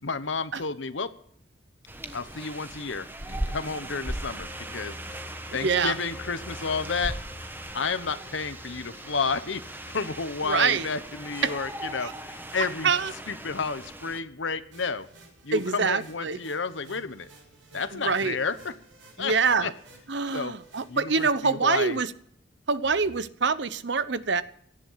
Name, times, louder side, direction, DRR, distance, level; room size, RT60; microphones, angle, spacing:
voice 1, 0.0-1.1 2.1-5.0 5.5-7.2 7.7-12.9 13.3-15.1 15.4-17.3 17.7-18.7 19.2-19.7 20.3-20.5 20.9-22.0, left 4 dB, 75° left, 12 dB, 1.2 m, -31 dB
sound 1, 1.9-14.2, right 1 dB, 10° right, 1.2 m, -39 dB
sound 2, 3.8-14.4 14.7-14.8, left 1 dB, 20° left, 1.4 m, -48 dB
voice 2, 5.6-5.9 10.4-10.9 11.4-11.5 12.0-12.1 12.8-13.1 15.5-16.4 17.9-18.4 19.2-19.7 20.1-22.1 22.7-24.4, right 5 dB, 65° right, 15 dB, 0.9 m, -25 dB
sound 3, 14.7-21.6, right 2 dB, 80° right, 7.1 m, -54 dB
17.5 x 12.5 x 5.8 m, 0.66 s
head